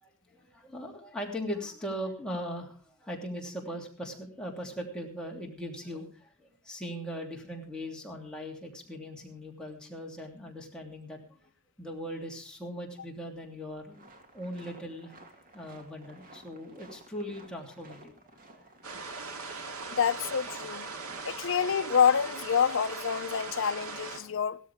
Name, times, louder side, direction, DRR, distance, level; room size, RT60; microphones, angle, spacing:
voice 1, 0.0-11.4 11.8-14.0 14.3-15.2 15.5-18.1 18.5-18.6, equal, 5° left, 3.0 m, -39 dB
sound 1, 13.9-22.7, right 2 dB, 40° right, 2.2 m, -54 dB
sound 2, 18.8-24.2, right 4 dB, 70° right, 2.1 m, -40 dB
voice 2, 20.0-20.9 21.2-24.6, left 7 dB, 60° left, 0.6 m, -27 dB
16.5 x 13.5 x 3.5 m
head